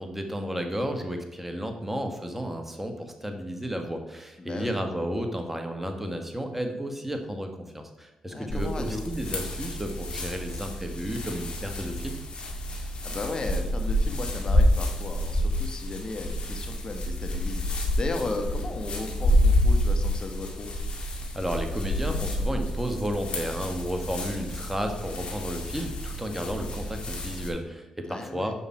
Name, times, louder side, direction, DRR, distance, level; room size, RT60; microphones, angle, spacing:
voice 1, 0.0-12.1 21.3-28.5, equal, 10° right, 4 dB, 1.6 m, -32 dB
voice 2, 4.4-4.8 8.3-9.1 13.0-17.6 18.0-20.7 28.1-28.5, left 2 dB, 40° left, 4 dB, 1.4 m, -35 dB
sound 1, 8.5-27.5, left 1 dB, 60° left, 1.9 m, -28 dB
7.1 x 5.4 x 4.4 m, 1.1 s
supercardioid pair, 50°, 2 cm